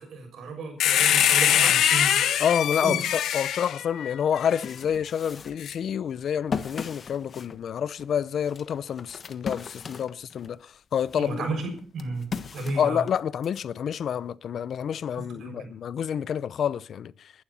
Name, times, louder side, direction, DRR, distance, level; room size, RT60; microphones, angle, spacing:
voice 1, 0.0-2.4 2.8-3.0 11.2-13.0 15.2-15.7, right 3 dB, 65° right, 6.7 m, -33 dB
sound 1, 0.8-4.6 5.6-5.7, left 10 dB, 75° left, 1.1 m, -23 dB
voice 2, 2.4-11.5 12.8-17.3, left 8 dB, 60° left, 0.6 m, -28 dB
sound 2, 4.2-10.6 11.0-13.6, left 5 dB, 45° left, 1.4 m, -38 dB
22.0 x 11.5 x 4.3 m
cardioid pair, 90°, 0 cm